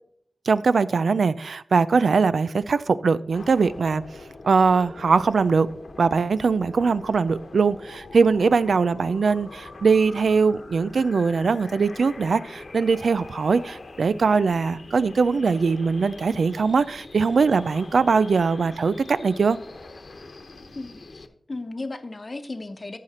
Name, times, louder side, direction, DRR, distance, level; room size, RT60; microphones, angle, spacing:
voice 1, 0.5-4.0 4.4-5.7 6.0-19.6, right 5 dB, 90° right, 16 dB, 0.4 m, -21 dB
sound 1, 3.3-21.3, left 3 dB, 65° left, 1.0 m, -43 dB
voice 2, 20.7-23.0, left 2 dB, 40° left, 9 dB, 0.9 m, -35 dB
14.0 x 5.7 x 4.3 m, 0.69 s
wide cardioid pair, 95°, 0 cm